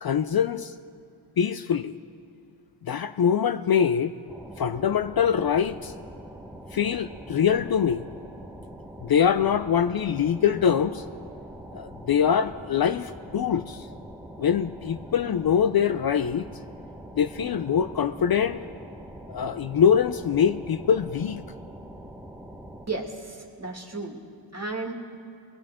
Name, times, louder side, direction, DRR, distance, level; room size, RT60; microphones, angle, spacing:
voice 1, 0.0-0.7 1.4-1.9 2.8-4.1 4.6-5.9 6.7-8.0 9.0-11.0 11.7-13.9 14.4-16.5 17.1-18.6 19.3-21.4, left 8 dB, 50° left, 11 dB, 0.5 m, -23 dB
sound 1, 4.3-22.9, right 1 dB, 5° right, 1.2 m, -43 dB
voice 2, 22.9-24.2 24.5-24.9, right 3 dB, 35° right, 1 dB, 2.1 m, -33 dB
21.5 x 15.0 x 3.7 m, 2.5 s
cardioid pair, 55°, 46 cm